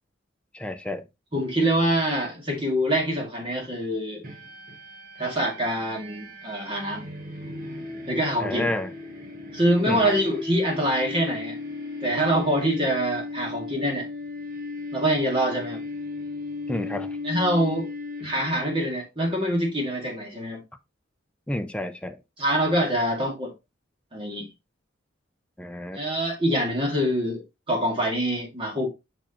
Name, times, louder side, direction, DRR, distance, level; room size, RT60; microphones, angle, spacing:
voice 1, 0.5-1.0 8.4-8.9 9.9-10.1 16.7-17.2 21.5-22.2 25.6-26.0, left 1 dB, 5° left, 0.4 m, -30 dB
voice 2, 1.3-4.2 5.2-7.2 8.1-8.7 9.5-11.6 12.0-14.1 14.9-15.8 17.2-17.9 18.2-20.6 22.4-23.5 24.1-24.5 25.9-28.9, right 1 dB, 25° right, 2.2 m, -25 dB
sound 1, 4.2-18.7, left 3 dB, 45° right, 1.7 m, -36 dB
6.3 x 6.3 x 2.9 m
head